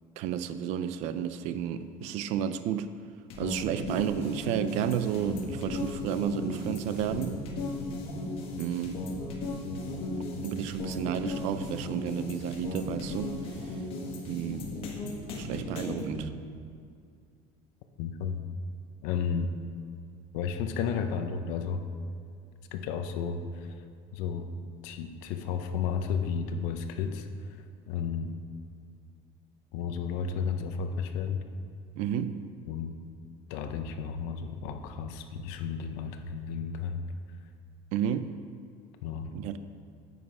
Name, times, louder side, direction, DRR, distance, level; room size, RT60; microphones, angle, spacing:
voice 1, 0.2-2.9 3.4-7.4 8.6-9.0 10.4-13.4 14.3-14.7 15.4-16.3 32.0-32.4 37.9-38.3 39.3-39.6, right 9 dB, 60° right, 11 dB, 0.5 m, -31 dB
sound 1, 3.3-16.2, left 2 dB, 45° left, 1.5 m, -36 dB
voice 2, 18.0-18.4 19.0-19.5 20.3-21.8 22.7-23.8 24.1-24.5 24.8-27.3 27.9-28.3 29.7-31.4 32.7-32.9 33.5-37.0 39.0-39.3, left 6 dB, 85° left, 7 dB, 0.8 m, -32 dB
9.6 x 7.8 x 4.8 m, 2.3 s
cardioid pair, 170°, 13 cm